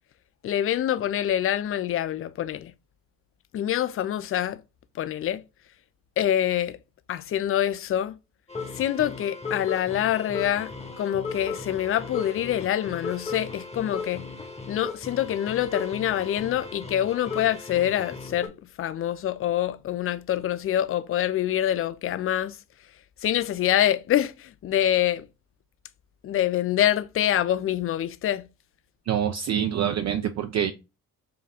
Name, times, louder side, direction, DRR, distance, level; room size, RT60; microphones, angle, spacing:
voice 1, 0.4-2.7 3.5-4.6 5.0-5.4 6.2-6.8 7.1-8.2 8.7-10.7 11.0-14.2 14.7-18.5 18.8-22.6 23.2-25.2 26.2-28.4, left 11 dB, 30° left, 0.4 m, -25 dB
sound 1, 8.5-18.5, left 4 dB, 15° left, 1.0 m, -36 dB
voice 2, 29.1-30.7, right 9 dB, 40° right, 0.4 m, -26 dB
4.9 x 2.3 x 3.4 m
hypercardioid pair, 50°, 45 cm